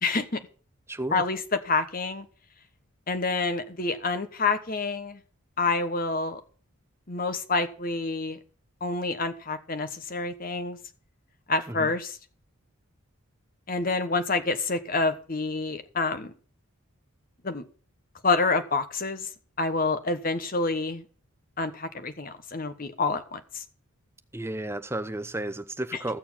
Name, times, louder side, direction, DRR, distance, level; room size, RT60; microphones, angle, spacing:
voice 1, 0.0-0.4 1.1-2.3 3.1-5.2 5.6-6.4 7.1-8.4 8.8-10.8 11.5-12.1 13.7-16.3 17.4-17.6 18.2-19.3 19.6-21.0 21.6-23.6, left 3 dB, 40° left, 1.2 m, -28 dB
voice 2, 0.9-1.2 11.7-11.9 24.3-26.2, right 1 dB, 10° right, 0.7 m, -33 dB
15.0 x 6.9 x 5.8 m
head